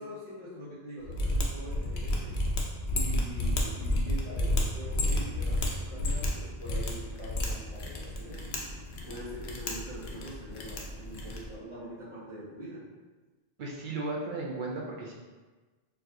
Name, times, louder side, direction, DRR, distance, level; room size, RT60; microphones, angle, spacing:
voice 1, 0.0-2.4 2.9-8.6 9.1-12.8, equal, 30° left, -12 dB, 0.8 m, -43 dB
Mechanisms, 1.0-11.5, left 1 dB, 75° left, 0.8 m, -31 dB
voice 2, 13.6-15.1, right 2 dB, 60° right, -1 dB, 0.6 m, -35 dB
4.5 x 2.3 x 2.6 m, 1.3 s
omnidirectional pair, 1.1 m